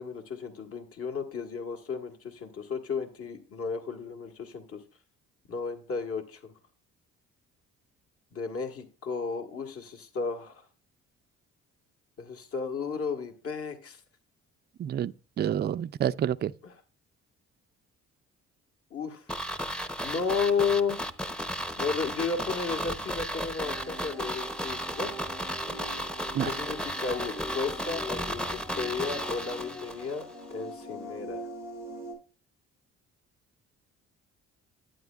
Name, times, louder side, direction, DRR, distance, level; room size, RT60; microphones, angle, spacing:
voice 1, 0.0-4.8 5.5-6.5 8.3-10.7 12.2-14.0 16.6-16.7 18.9-19.3 20.0-21.0 21.8-25.1 26.4-31.5, left 5 dB, 50° left, 1.6 m, -33 dB
voice 2, 14.8-16.5 26.3-26.6, right 10 dB, 35° right, 0.4 m, -29 dB
sound 1, 19.3-30.2 30.5-30.6, equal, 5° left, 0.7 m, -34 dB
sound 2, 23.6-32.1, left 1 dB, 90° left, 4.8 m, -42 dB
11.0 x 9.0 x 2.3 m
supercardioid pair, 65°, 30 cm